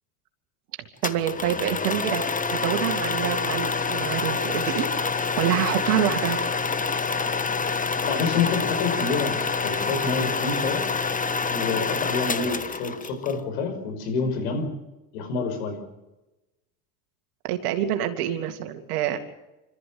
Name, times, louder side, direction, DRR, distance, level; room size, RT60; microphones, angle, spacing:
sound 1, 1.0-13.3, left 4 dB, 20° left, 1.4 m, -27 dB
voice 1, 1.0-2.2 2.5-4.9 5.4-6.4 17.4-19.2, right 11 dB, 85° right, 7 dB, 2.6 m, -26 dB
voice 2, 8.0-10.9 11.5-14.7 15.1-15.8, left 4 dB, 85° left, 6 dB, 5.7 m, -28 dB
26.5 x 14.0 x 7.8 m, 1.0 s
hypercardioid pair, 80°, 44 cm